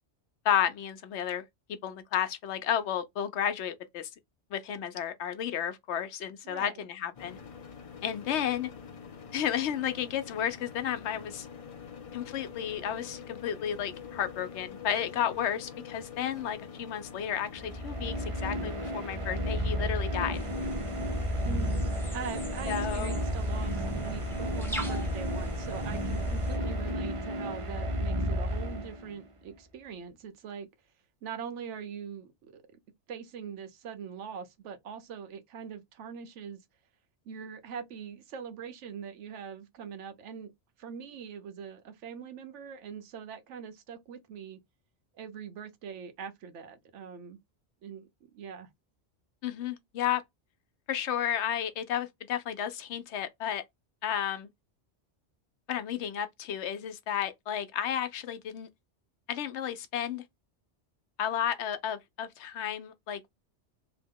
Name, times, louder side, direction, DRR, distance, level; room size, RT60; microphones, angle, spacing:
voice 1, 0.4-1.4 1.8-4.1 4.5-7.4 8.0-8.7 9.3-11.5 12.1-20.5 22.7-23.2 49.4-50.2 50.9-53.6 54.0-54.5 55.7-58.7 59.3-60.2 61.2-63.3, left 9 dB, 75° left, 0.9 m, -32 dB
voice 2, 6.4-6.8 21.4-30.7 31.2-32.8 33.1-36.6 37.3-40.5 40.8-44.6 45.1-47.4 47.8-48.7, right 7 dB, 85° right, 1.0 m, -42 dB
sound 1, 7.1-26.9, left 6 dB, 55° left, 0.4 m, -46 dB
sound 2, 17.5-29.3, equal, 40° right, 0.5 m, -32 dB
sound 3, 20.3-26.6, right 1 dB, 5° left, 0.6 m, -38 dB
2.8 x 2.0 x 3.5 m
omnidirectional pair, 1.2 m